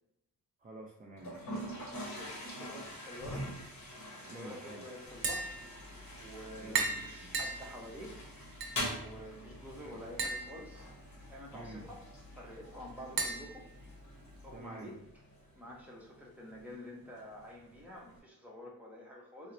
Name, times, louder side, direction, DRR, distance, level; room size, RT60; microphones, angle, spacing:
voice 1, 0.6-1.7 4.3-4.8 6.6-7.4 9.7-10.0 11.5-11.8 14.5-15.0, right 2 dB, 25° right, -1 dB, 0.4 m, -49 dB
Toilet flush, 1.2-18.2, equal, 50° left, 1.0 m, -46 dB
voice 2, 2.1-3.5 4.2-5.6 6.2-8.2 8.9-10.9 11.3-12.0 12.3-13.7 14.4-15.2 15.5-19.5, equal, 5° right, -3 dB, 0.8 m, -48 dB
Tap, 5.1-14.6, right 3 dB, 70° right, 0.7 m, -40 dB
4.1 x 2.0 x 2.6 m, 0.82 s
cardioid pair, 105°, 36 cm